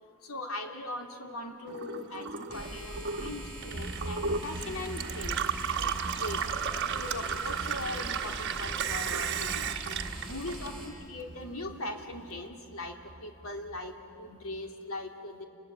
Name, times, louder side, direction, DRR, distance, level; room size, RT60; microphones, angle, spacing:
voice 1, 0.2-5.4 5.8-5.9 6.2-6.4 7.0-9.7 10.3-13.0 13.2-15.4, left 2 dB, 75° left, 3 dB, 2.7 m, -40 dB
Gurgling / Water tap faucet / Sink (filling or washing), 1.7-11.2 11.5-12.4, right 6 dB, 55° right, 1.3 m, -34 dB
sound 1, 2.5-10.8, right 1 dB, 25° left, 7.3 m, -43 dB
sound 2, 3.7-14.7, right 1 dB, 35° right, 1.0 m, -45 dB
30.0 x 21.0 x 9.0 m, 2.6 s
head